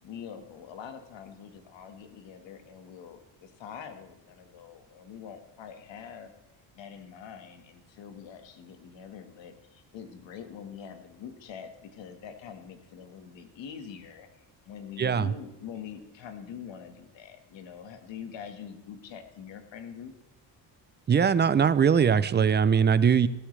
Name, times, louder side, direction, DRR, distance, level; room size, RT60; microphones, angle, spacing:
voice 1, 0.0-6.3 6.7-20.1, left 7 dB, 70° left, 7 dB, 1.7 m, -44 dB
voice 2, 21.1-23.3, right 7 dB, 25° right, 15 dB, 0.4 m, -21 dB
15.0 x 13.0 x 3.3 m, 0.94 s
cardioid pair, 135°, 46 cm